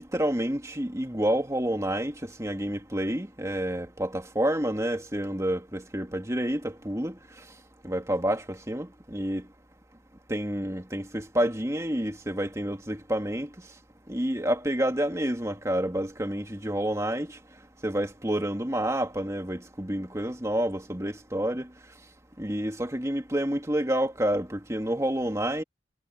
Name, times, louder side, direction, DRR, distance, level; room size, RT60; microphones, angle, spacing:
voice 1, 0.0-2.1 2.4-7.2 7.8-9.4 10.3-13.5 14.1-17.3 17.8-21.7 22.4-25.6, right 1 dB, 15° right, 2.4 m, -29 dB
head